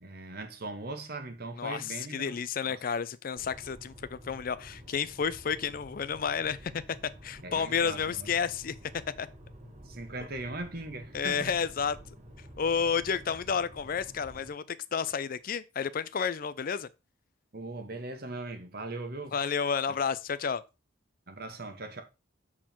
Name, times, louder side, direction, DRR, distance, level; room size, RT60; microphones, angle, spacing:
voice 1, 0.0-2.4 2.7-2.8 7.4-8.3 9.8-11.6 17.5-19.4 21.3-22.0, right 2 dB, 50° right, 1.2 m, -39 dB
voice 2, 1.6-6.8 7.2-8.8 9.2-9.3 11.1-12.0 12.6-14.6 14.9-16.9 19.3-20.6, left 6 dB, 45° left, 0.4 m, -31 dB
sound 1, 3.4-14.5, equal, 35° right, 1.5 m, -50 dB
7.3 x 4.4 x 4.4 m
head